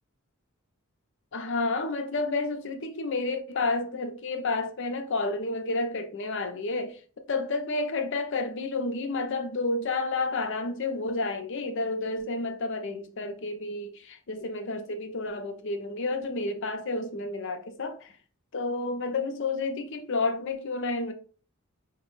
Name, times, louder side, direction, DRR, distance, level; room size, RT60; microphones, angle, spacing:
voice 1, 1.3-7.0 7.3-18.1 18.5-21.1, left 3 dB, 60° left, 0.7 m, -30 dB
5.0 x 2.2 x 3.1 m
head